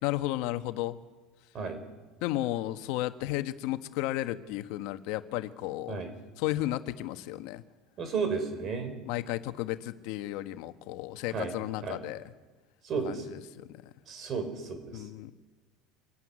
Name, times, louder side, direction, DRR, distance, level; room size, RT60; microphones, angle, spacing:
voice 1, 0.0-1.0 2.2-6.0 6.4-7.6 9.0-12.2 13.0-13.7 14.9-15.3, left 15 dB, 65° left, 9 dB, 1.2 m, -33 dB
voice 2, 8.0-9.0 11.3-11.5 11.8-12.0 12.8-13.2 14.1-15.0, right 5 dB, 35° right, 8 dB, 4.9 m, -33 dB
25.0 x 16.0 x 10.0 m, 1.3 s
cardioid pair, 145°, 0 cm